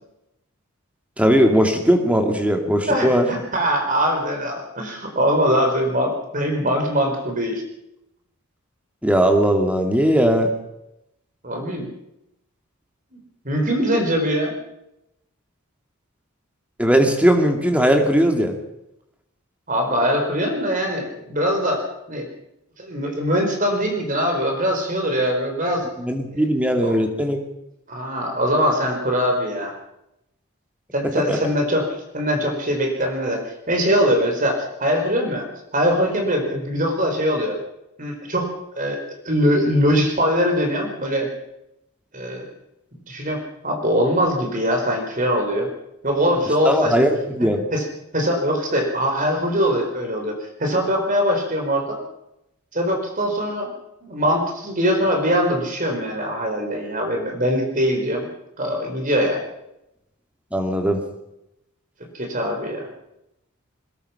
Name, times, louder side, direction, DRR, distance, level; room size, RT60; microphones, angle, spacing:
voice 1, 1.2-3.3 9.0-10.5 16.8-18.6 26.0-27.4 31.3-31.4 46.7-47.6 60.5-61.0, equal, 5° right, 4 dB, 2.4 m, -18 dB
voice 2, 2.9-7.6 11.4-11.9 13.4-14.5 19.7-22.3 22.8-25.8 26.3-26.4 26.8-27.0 27.9-29.7 30.9-31.9 32.1-33.4 33.7-35.5 35.7-37.6 38.0-39.0 39.2-41.3 42.1-42.5 43.1-45.7 46.0-46.9 47.7-47.8 48.1-52.0 52.7-53.7 54.0-58.3 58.6-59.4 62.1-62.9, equal, 35° right, 3 dB, 4.5 m, -22 dB
22.0 x 20.5 x 5.8 m, 0.85 s
head